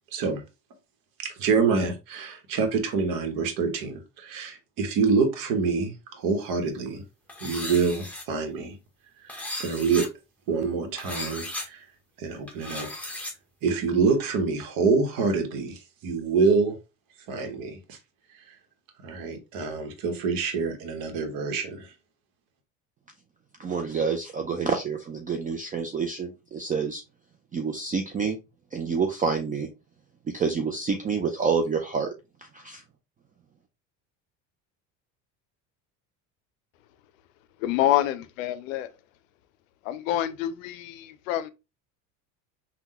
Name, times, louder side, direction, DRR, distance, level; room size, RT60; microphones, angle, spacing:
voice 1, 0.1-0.4 1.2-7.0 7.4-8.8 9.2-10.1 10.5-11.9 12.2-12.9 13.6-16.8 17.3-18.0 18.3-18.6 19.0-21.9, right 5 dB, 60° right, 1.0 m, -26 dB
sound 1, 7.3-8.2 9.3-10.1 11.0-11.7 12.5-13.3, left 1 dB, 5° left, 0.9 m, -36 dB
voice 2, 23.6-27.0 27.5-28.4 28.7-29.7 30.3-32.1 32.4-32.8, right 5 dB, 20° right, 0.4 m, -28 dB
voice 3, 37.6-38.9 39.8-41.5, left 12 dB, 90° left, 0.5 m, -27 dB
3.5 x 2.2 x 2.9 m
supercardioid pair, 90°, 38 cm